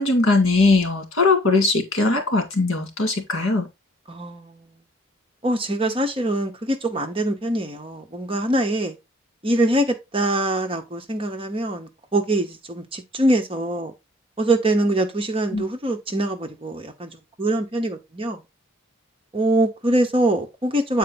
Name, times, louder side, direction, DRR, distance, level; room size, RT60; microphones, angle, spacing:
voice 1, 0.0-3.7 15.5-15.7, left 3 dB, 75° left, 2.1 m, -20 dB
voice 2, 4.1-4.7 5.4-8.9 9.4-13.9 14.4-18.4 19.3-21.0, right 1 dB, 25° right, 0.9 m, -23 dB
8.2 x 4.4 x 4.0 m
head